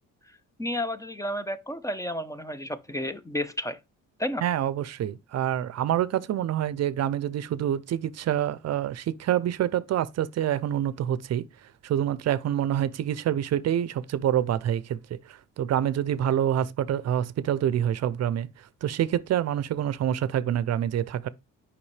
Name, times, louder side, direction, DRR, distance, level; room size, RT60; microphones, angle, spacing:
voice 1, 0.6-3.8 4.2-4.4, left 1 dB, 10° left, 0.7 m, -31 dB
voice 2, 4.4-11.5 11.8-21.3, right 10 dB, 60° right, 0.6 m, -27 dB
7.0 x 5.3 x 3.2 m
cardioid pair, 90°, 30 cm